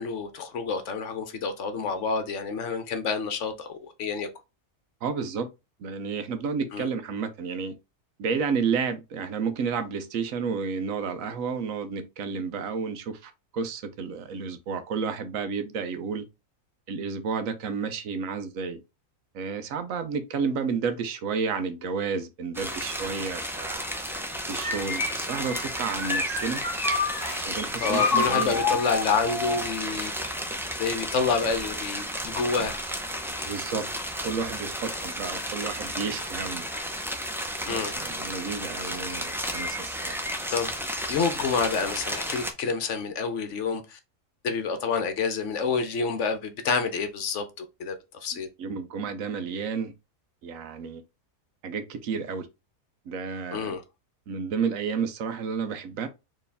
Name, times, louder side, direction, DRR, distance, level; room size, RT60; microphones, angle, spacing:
voice 1, 0.0-4.3 6.7-6.9 27.8-30.1 30.8-32.8 37.7-37.9 40.5-40.7 41.1-44.0 44.4-48.0 48.2-48.5 53.5-53.8, left 5 dB, 65° left, 1.0 m, -28 dB
voice 2, 5.0-5.5 5.8-7.7 8.2-16.2 16.9-18.8 19.3-23.9 24.5-26.6 27.4-28.8 33.4-33.9 34.2-36.6 37.6-40.2 48.6-49.9 50.4-51.0 51.6-52.5 53.1-53.8 54.3-56.1, right 5 dB, 75° right, 1.1 m, -31 dB
sound 1, 22.5-42.5, equal, 5° right, 0.3 m, -33 dB
sound 2, 24.6-27.4 27.9-29.7, left 4 dB, 25° left, 1.7 m, -28 dB
4.5 x 3.2 x 3.4 m
omnidirectional pair, 1.5 m